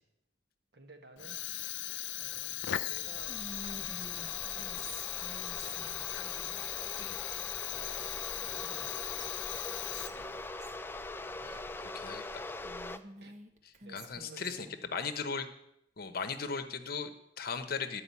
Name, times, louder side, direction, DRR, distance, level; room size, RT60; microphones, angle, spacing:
voice 1, 0.7-1.4 2.1-5.0 5.5-6.7 7.7-9.4 13.2-13.3 13.8-14.6, right 2 dB, 60° right, 5 dB, 1.3 m, -55 dB
Fire, 1.2-10.5, left 13 dB, 70° left, 0.5 m, -38 dB
sound 1, 3.1-13.0, left 2 dB, 10° left, 0.4 m, -43 dB
Whispering, 3.3-6.1 8.2-8.9 9.2-9.3 9.7-10.8 12.6-14.8, right 2 dB, 40° right, 0.8 m, -50 dB
voice 2, 11.4-12.5 13.9-15.5 16.0-18.0, left 5 dB, 55° left, 9 dB, 0.9 m, -38 dB
11.5 x 4.9 x 8.3 m, 0.82 s
head